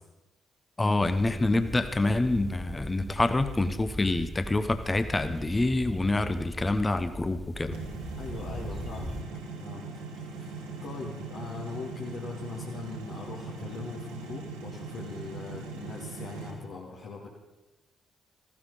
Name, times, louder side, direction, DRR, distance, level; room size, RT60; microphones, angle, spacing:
voice 1, 0.8-7.8, left 2 dB, 25° left, 10 dB, 1.1 m, -26 dB
sound 1, 1.0-9.2, right 1 dB, 5° right, 2.0 m, -40 dB
sound 2, 7.7-16.5, right 4 dB, 75° right, 2.0 m, -40 dB
voice 2, 8.1-9.2 9.6-9.9 10.1-17.3, left 4 dB, 65° left, -6 dB, 2.5 m, -41 dB
15.0 x 13.5 x 5.2 m, 1.0 s
figure-of-eight pair, 40°, 0 cm